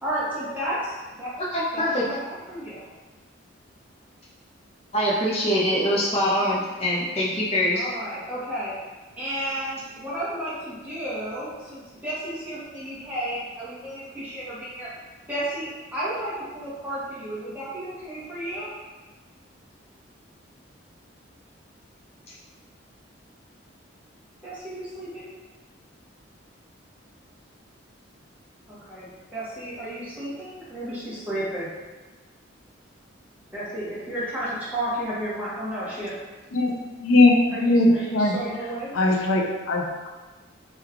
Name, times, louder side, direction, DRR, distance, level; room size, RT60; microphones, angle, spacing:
voice 1, 0.0-1.3 1.7-2.9 6.2-6.8 7.7-8.7 9.2-14.9 15.3-18.7 24.4-25.3 28.7-31.7 33.5-36.2 37.5-38.9, right 1 dB, 10° right, -10 dB, 0.9 m, -32 dB
voice 2, 1.4-2.0 4.9-7.9, equal, 30° left, -6 dB, 0.5 m, -24 dB
voice 3, 36.5-37.3 37.6-38.3 38.9-40.1, left 2 dB, 90° left, 0 dB, 0.5 m, -20 dB
3.1 x 2.3 x 3.5 m, 1.2 s
head